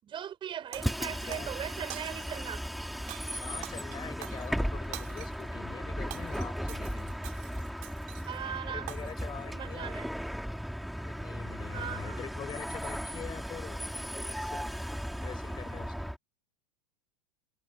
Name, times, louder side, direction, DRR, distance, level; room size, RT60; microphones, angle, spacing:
voice 1, 0.0-2.6 8.2-10.1 11.7-12.2, right 9 dB, 30° right, 7.5 m, -39 dB
voice 2, 0.7-1.5 3.4-7.1 8.7-9.9 11.0-14.7 15.1-16.1, left 8 dB, 30° left, 7.2 m, -45 dB
Bus, 0.7-16.2, equal, ahead, 5.0 m, -36 dB
Shatter, 0.7-1.5 1.9-2.5 3.1-5.5 5.9-8.4 8.9-9.3, right 21 dB, 45° right, 3.7 m, -46 dB
figure-of-eight pair, 90°, 16 cm